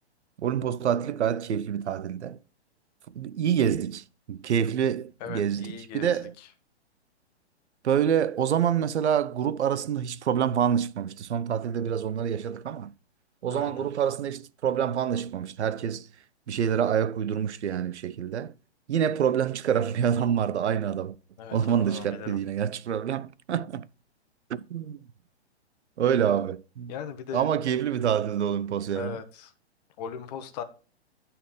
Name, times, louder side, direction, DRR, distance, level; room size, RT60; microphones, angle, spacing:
voice 1, 0.4-2.4 3.1-6.3 7.8-12.9 13.4-16.1 16.5-18.5 18.9-21.2 21.5-23.9 24.5-25.0 26.0-26.9 27.3-29.2, right 8 dB, 80° right, 0.6 m, -27 dB
voice 2, 5.2-6.5 13.5-13.9 21.4-22.4 26.9-27.5 28.9-29.5 30.0-30.6, left 8 dB, 40° left, 1.0 m, -39 dB
10.0 x 4.3 x 3.7 m
hypercardioid pair, 135°, 33 cm